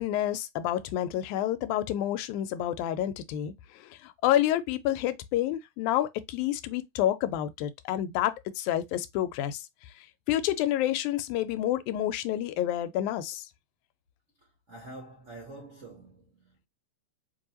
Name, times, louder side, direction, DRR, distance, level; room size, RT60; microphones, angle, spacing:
voice 1, 0.0-9.7 10.3-13.5, left 12 dB, 85° left, 2.0 m, -29 dB
voice 2, 14.7-16.7, right 2 dB, 90° right, 0.6 m, -46 dB
5.1 x 2.6 x 2.9 m
omnidirectional pair, 3.4 m